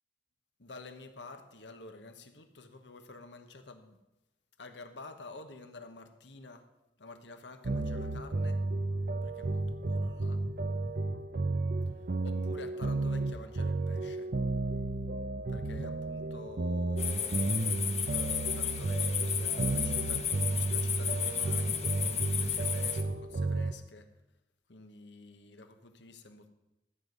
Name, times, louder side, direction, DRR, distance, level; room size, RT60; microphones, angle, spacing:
voice 1, 0.6-4.0 4.6-6.7 7.0-8.6 9.2-10.4 12.2-14.3 15.5-24.1 24.7-26.5, left 3 dB, 85° left, 1.2 m, -49 dB
sound 1, 7.6-23.7, right 2 dB, 55° right, 0.7 m, -32 dB
sound 2, 17.0-23.0, left 8 dB, 40° left, 1.0 m, -33 dB
13.5 x 8.1 x 5.3 m
head